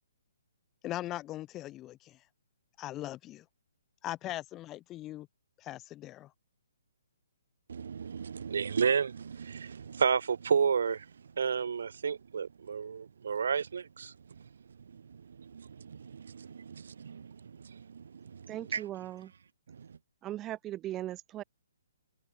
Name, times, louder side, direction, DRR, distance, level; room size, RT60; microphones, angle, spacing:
voice 1, 0.8-2.2 2.8-3.4 4.0-5.3 5.6-6.3, left 15 dB, 15° left, 3.1 m, -40 dB
voice 2, 7.7-11.1 11.4-14.1 14.9-18.8 19.7-20.0, right 6 dB, 70° right, 1.1 m, -32 dB
voice 3, 18.5-19.3 20.2-21.4, right 14 dB, 15° right, 1.8 m, -38 dB
hypercardioid pair, 160°, 0 cm